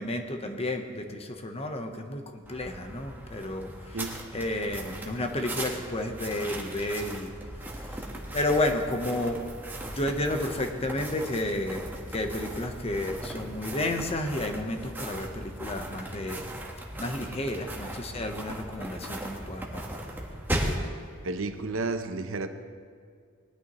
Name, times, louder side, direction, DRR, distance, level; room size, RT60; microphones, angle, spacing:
voice 1, 0.0-3.7 4.3-7.3 7.8-7.9 8.3-9.4 9.8-16.5 17.0-19.8, left 1 dB, 30° left, 1.0 m, -31 dB
sound 1, 2.4-20.9, right 1 dB, 10° right, 1.4 m, -38 dB
voice 2, 21.2-22.5, right 3 dB, 80° right, 0.8 m, -31 dB
19.0 x 11.5 x 3.1 m
head